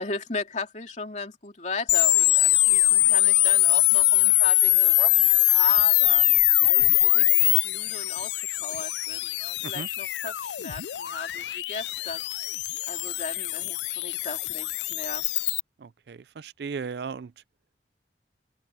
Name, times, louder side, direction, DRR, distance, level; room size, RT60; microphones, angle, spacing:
voice 1, 0.0-6.2 6.7-8.3 8.6-12.2 12.9-15.3, left 3 dB, 40° left, 2.8 m, -36 dB
sound 1, 1.9-15.6, left 18 dB, 75° left, 0.4 m, -22 dB
voice 2, 15.8-17.3, right 5 dB, 65° right, 0.4 m, -36 dB
head